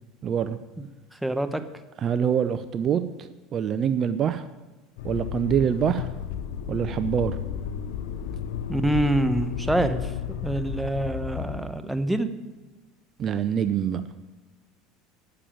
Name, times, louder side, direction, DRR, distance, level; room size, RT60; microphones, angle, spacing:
voice 1, 0.2-0.6 2.0-4.5 5.0-6.1 6.7-7.4 13.2-14.0, right 8 dB, 40° right, 11 dB, 0.5 m, -25 dB
voice 2, 1.2-1.6 8.7-10.0 10.4-12.3, right 1 dB, 5° right, 9 dB, 0.9 m, -25 dB
Motor vehicle (road), 5.0-11.6, left 8 dB, 75° left, 0.7 m, -33 dB
9.2 x 6.8 x 8.8 m, 1.2 s
supercardioid pair, 95°, 0 cm